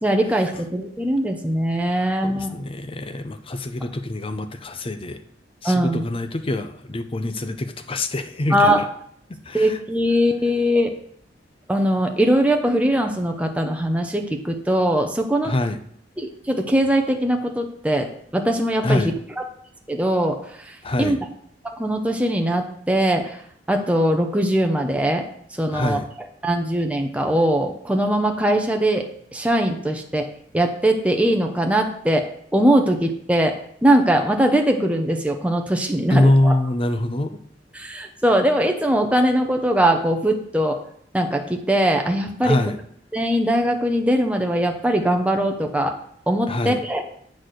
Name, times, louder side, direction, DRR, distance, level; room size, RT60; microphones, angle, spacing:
voice 1, 0.0-2.6 5.6-6.0 8.5-8.8 9.5-10.9 11.7-15.5 16.2-19.0 19.9-20.4 21.0-21.2 21.8-23.4 23.7-25.2 25.6-26.0 26.4-29.0 29.3-30.3 30.5-32.2 32.5-33.5 33.8-36.5 37.8-40.8 41.1-42.6 43.1-45.9 46.3-47.0, right 1 dB, 5° right, 3 dB, 0.8 m, -21 dB
voice 2, 1.9-5.2 5.6-8.9 9.4-9.8 15.4-15.8 18.8-19.1 20.8-21.2 25.7-26.1 36.1-37.4 42.4-42.8 46.5-46.8, left 1 dB, 30° left, 9 dB, 0.6 m, -24 dB
8.4 x 4.2 x 6.3 m, 0.65 s
head